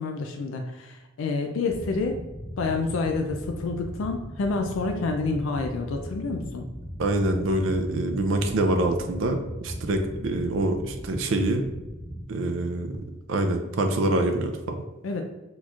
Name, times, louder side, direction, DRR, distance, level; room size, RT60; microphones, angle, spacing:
voice 1, 0.0-2.2 2.6-6.7 15.0-15.2, left 3 dB, 80° left, 3 dB, 0.4 m, -28 dB
sound 1, 1.7-12.2, equal, 45° left, 1.2 m, -38 dB
voice 2, 7.0-9.4 9.6-11.6 12.3-13.0 13.3-14.8, right 2 dB, 75° right, 5 dB, 0.4 m, -25 dB
4.0 x 3.0 x 2.4 m, 1.1 s
head